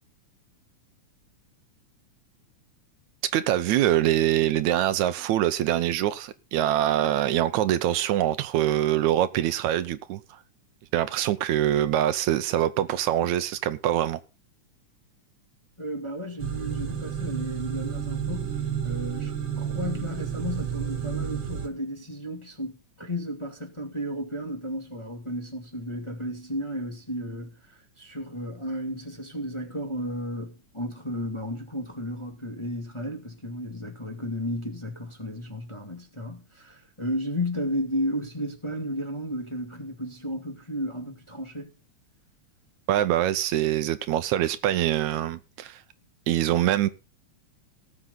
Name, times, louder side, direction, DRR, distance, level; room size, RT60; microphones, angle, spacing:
voice 1, 3.2-10.2 10.9-14.2 42.9-45.8 46.3-46.9, right 12 dB, 75° right, 2.1 m, -24 dB
voice 2, 15.8-41.7, equal, 10° left, 1.7 m, -33 dB
sound 1, 16.4-21.7, right 8 dB, 55° right, 3.0 m, -31 dB
19.0 x 7.6 x 3.9 m
omnidirectional pair, 3.4 m